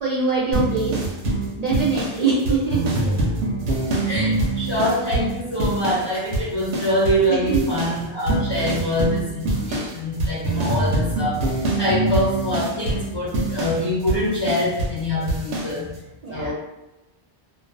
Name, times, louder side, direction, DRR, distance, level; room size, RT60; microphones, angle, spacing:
voice 1, 0.0-1.0 1.6-2.8 7.5-7.7 16.2-16.5, right 4 dB, 55° right, -7 dB, 0.4 m, -23 dB
sound 1, 0.5-6.1 6.3-7.3 7.5-15.0 15.3-15.7, right 2 dB, 90° right, 0.9 m, -24 dB
voice 2, 4.1-15.9 16.3-16.5, left 1 dB, 30° left, -8 dB, 0.6 m, -24 dB
2.3 x 2.2 x 2.5 m, 1.0 s
omnidirectional pair, 1.1 m